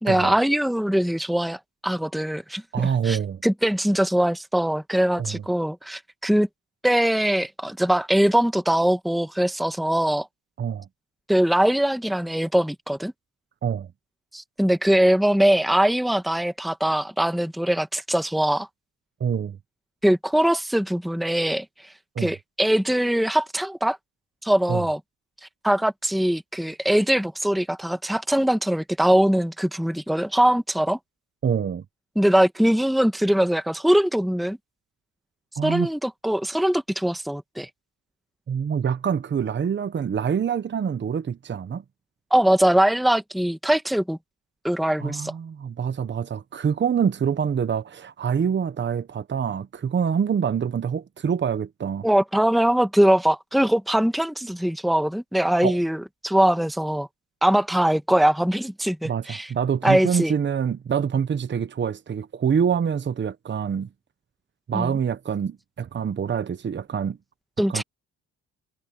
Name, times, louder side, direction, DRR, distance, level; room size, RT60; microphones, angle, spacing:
voice 1, 0.0-6.5 6.8-10.3 11.3-13.1 14.3-18.7 20.0-21.6 22.2-24.0 24.4-25.0 25.6-31.0 32.1-34.6 35.6-37.7 42.3-44.2 44.6-45.3 52.0-57.1 57.4-59.5 59.8-60.3 64.7-64.9 67.6-67.8, right 1 dB, ahead, 1.3 m, -22 dB
voice 2, 2.7-3.4 5.2-5.4 10.6-10.9 13.6-13.9 19.2-19.6 22.1-22.3 24.7-24.8 31.4-31.8 35.6-35.9 38.5-41.8 45.0-52.1 55.6-55.8 59.0-63.9 64.7-67.2 67.7-67.8, right 7 dB, 40° right, 1.0 m, -25 dB
cardioid pair, 90°, 30 cm